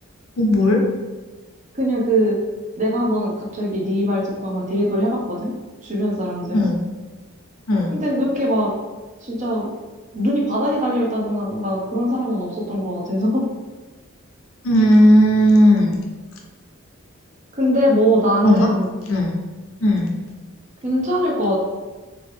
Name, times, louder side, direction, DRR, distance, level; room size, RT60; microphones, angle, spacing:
voice 1, 0.4-0.8 6.5-6.8 7.7-7.9 14.6-16.0 18.4-18.7 19.1-19.4 19.8-20.1, equal, 80° left, 0 dB, 0.8 m, -15 dB
voice 2, 1.7-2.4 2.8-5.5 5.8-6.7 7.9-8.7 9.2-9.7 10.1-13.4 17.6-19.0 20.8-21.6, equal, 35° right, -3 dB, 0.8 m, -21 dB
3.7 x 3.0 x 3.3 m, 1.3 s
head